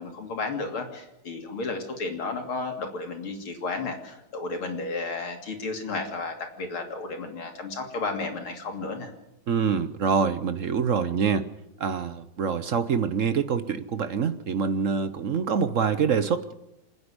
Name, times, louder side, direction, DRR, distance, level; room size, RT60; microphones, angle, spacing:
voice 1, 0.0-9.1, left 3 dB, 85° left, 4 dB, 3.7 m, -33 dB
voice 2, 9.5-11.5 11.8-16.5, right 6 dB, 55° right, 11 dB, 0.9 m, -25 dB
27.5 x 9.7 x 9.7 m, 0.91 s
omnidirectional pair, 2.3 m